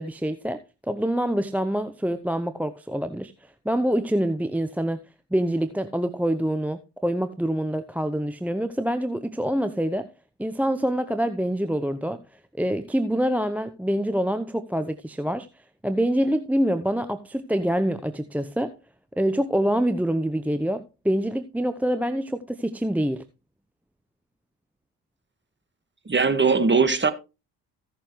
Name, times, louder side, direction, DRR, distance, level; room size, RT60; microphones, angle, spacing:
voice 1, 0.0-5.0 5.3-10.1 10.4-12.2 12.6-15.5 15.8-18.7 19.2-23.2, equal, 5° right, 0.8 m, -26 dB
voice 2, 26.1-27.1, right 4 dB, 25° right, 1.9 m, -20 dB
16.0 x 6.8 x 3.2 m
hypercardioid pair, 50°, 48 cm